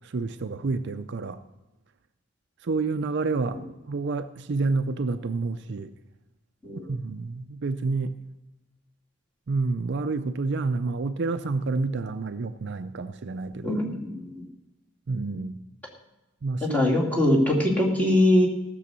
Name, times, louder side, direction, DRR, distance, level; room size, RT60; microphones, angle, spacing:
voice 1, 0.0-1.4 2.6-3.6 3.9-5.9 6.9-8.1 9.5-13.8 15.1-15.6 16.4-16.8, right 3 dB, 55° right, 0.5 m, -29 dB
voice 2, 13.6-14.5 16.6-18.5, left 1 dB, 5° left, 2.3 m, -22 dB
15.0 x 7.0 x 6.8 m
head